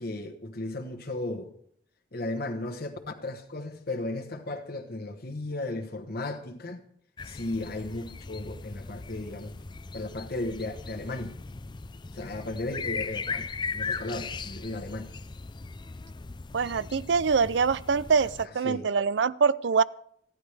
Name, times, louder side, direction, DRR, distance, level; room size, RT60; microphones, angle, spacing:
voice 1, 0.0-1.5 2.1-6.8 7.2-9.5 9.9-11.4 12.1-15.1 18.6-18.9, left 2 dB, 55° left, 1.1 m, -35 dB
sound 1, 7.2-18.5, left 4 dB, 25° left, 0.4 m, -38 dB
voice 2, 16.5-19.8, right 5 dB, 75° right, 0.5 m, -24 dB
28.5 x 10.5 x 3.4 m
head